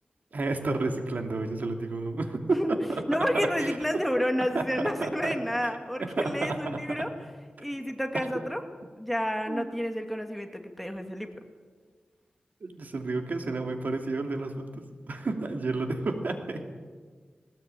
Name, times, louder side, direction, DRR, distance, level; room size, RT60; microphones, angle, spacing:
voice 1, 0.3-3.8 4.5-5.4 5.6-5.7 6.0-7.1 9.5-9.7 12.6-16.6, right 3 dB, 65° right, 4 dB, 2.6 m, -31 dB
voice 2, 3.1-7.1 7.6-8.6 9.0-11.3, equal, ahead, 4 dB, 2.1 m, -30 dB
20.0 x 19.5 x 9.0 m, 1.5 s
wide cardioid pair, 100°, 3 cm